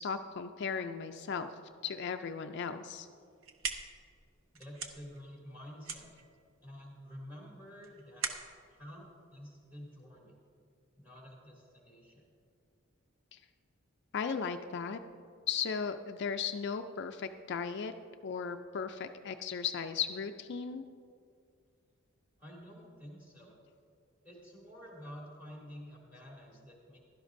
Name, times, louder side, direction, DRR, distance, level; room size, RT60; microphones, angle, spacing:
voice 1, 0.0-1.5 1.8-3.1 13.3-13.4 14.1-15.0 15.5-17.9 18.2-20.8, left 6 dB, 55° left, 7 dB, 0.4 m, -36 dB
sound 1, 3.2-10.0, right 5 dB, 65° right, 0.8 m, -43 dB
voice 2, 4.5-6.1 6.6-8.3 8.7-10.4 11.0-12.2 22.4-23.6 24.2-27.0, equal, 10° right, -3 dB, 2.6 m, -50 dB
16.0 x 12.0 x 2.6 m, 2.3 s
head